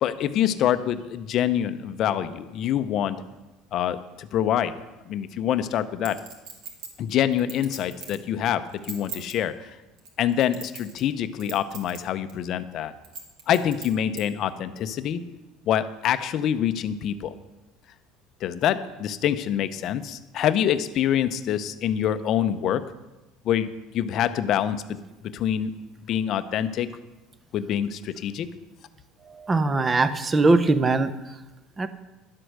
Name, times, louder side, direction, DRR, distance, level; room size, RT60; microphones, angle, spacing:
voice 1, 0.0-3.2 3.7-4.8 5.1-6.2 7.0-9.5 10.2-12.9 13.5-15.2 15.7-17.3 18.4-22.8 23.4-23.7 23.9-25.0 25.3-25.7 26.1-26.9 27.5-28.5, left 10 dB, 40° left, 12 dB, 0.6 m, -25 dB
Chink clink, 6.0-8.2 8.7-9.3 10.0-11.1 11.4-12.0 12.3-12.4 13.0-14.2 14.8-14.9, right 5 dB, 55° right, 2.2 m, -39 dB
voice 2, 29.3-31.1 31.8-31.9, right 3 dB, 15° right, 12 dB, 0.6 m, -21 dB
11.5 x 8.0 x 6.5 m, 1.1 s
cardioid pair, 170°, 0 cm